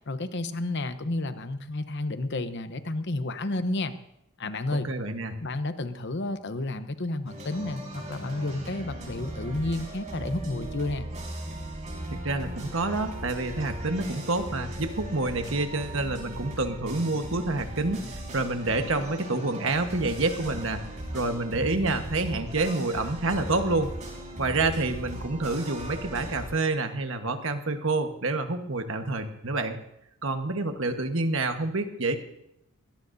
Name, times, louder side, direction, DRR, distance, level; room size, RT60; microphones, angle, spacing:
voice 1, 0.1-4.0 4.4-4.9 5.4-11.1, left 2 dB, 50° left, 10 dB, 0.9 m, -31 dB
voice 2, 4.7-5.4 12.1-20.9 21.1-23.9 24.4-29.8 30.2-32.2, right 2 dB, 60° right, 6 dB, 1.3 m, -28 dB
sound 1, 7.3-26.5, right 1 dB, 35° right, 4.8 m, -38 dB
22.0 x 17.5 x 2.7 m, 0.80 s
head